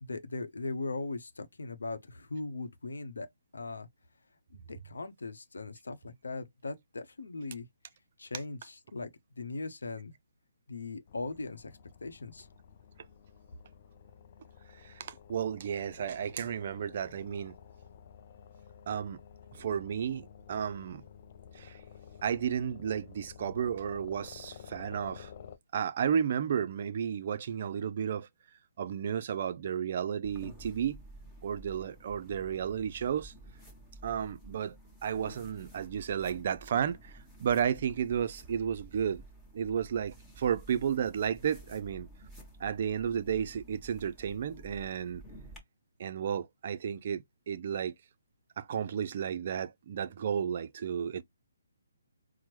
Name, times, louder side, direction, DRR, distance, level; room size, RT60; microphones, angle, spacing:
voice 1, 0.0-3.3 3.5-3.9 4.5-7.7 8.2-10.1 10.7-11.7 12.0-12.5, left 3 dB, 75° left, 0.7 m, -39 dB
sound 1, 11.1-25.6, left 7 dB, 40° left, 0.4 m, -52 dB
voice 2, 14.8-17.6 18.9-19.2 19.5-21.0 21.6-21.8 22.2-25.3 25.7-28.3 28.8-31.0 31.4-33.3 34.0-34.8 35.0-39.2 39.5-42.1 42.6-45.2 46.0-47.9 48.6-51.2, right 8 dB, 45° right, 0.4 m, -33 dB
sound 2, 30.2-45.6, right 1 dB, ahead, 1.2 m, -52 dB
4.3 x 2.0 x 3.1 m
figure-of-eight pair, 140°, 0 cm